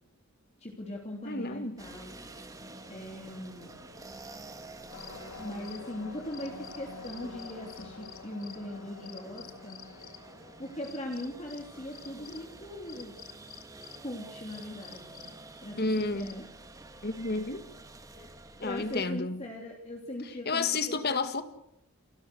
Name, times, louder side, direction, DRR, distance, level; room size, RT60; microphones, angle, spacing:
voice 1, 0.6-2.2 2.9-3.7 5.4-9.8 10.6-13.1 14.0-15.2 15.6-16.5 18.1-18.3 18.6-21.2, left 1 dB, 30° left, 3.0 m, -40 dB
voice 2, 1.2-1.8 15.8-16.3 17.0-17.6 18.6-19.4 20.4-21.4, left 3 dB, 50° left, 1.8 m, -30 dB
sound 1, 1.8-19.1, right 2 dB, 15° right, 1.5 m, -50 dB
Wind instrument woodwind instrument, 2.2-6.9, right 2 dB, 90° right, 4.5 m, -57 dB
sound 2, 4.9-16.4, left 5 dB, 80° left, 2.0 m, -48 dB
29.0 x 13.0 x 8.0 m
head